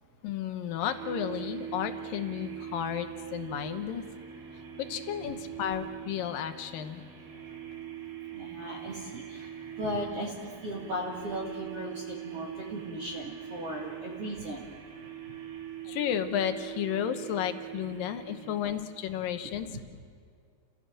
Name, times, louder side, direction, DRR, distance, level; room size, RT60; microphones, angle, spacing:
voice 1, 0.2-4.0 4.8-7.1 15.8-19.7, left 10 dB, 80° left, 8 dB, 2.8 m, -33 dB
sound 1, 0.8-19.1, right 10 dB, 75° right, 4.0 m, -42 dB
voice 2, 8.3-9.5 9.8-14.7 18.2-18.6 19.7-19.8, equal, 45° right, -4 dB, 3.0 m, -37 dB
29.5 x 17.0 x 7.6 m, 2.2 s
omnidirectional pair, 4.0 m